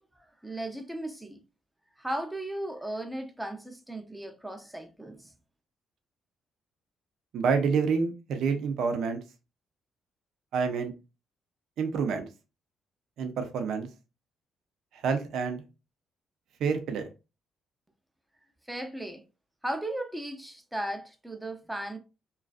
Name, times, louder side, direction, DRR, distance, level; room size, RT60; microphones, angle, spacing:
voice 1, 0.4-1.4 2.0-5.3 18.7-19.2 19.6-22.0, right 1 dB, 5° right, 0.5 m, -36 dB
voice 2, 7.3-9.2 10.5-10.9 11.8-12.3 13.2-13.9 14.9-15.6 16.6-17.0, right 5 dB, 75° right, 0.5 m, -28 dB
2.4 x 2.3 x 2.3 m
cardioid pair, 90°, 0 cm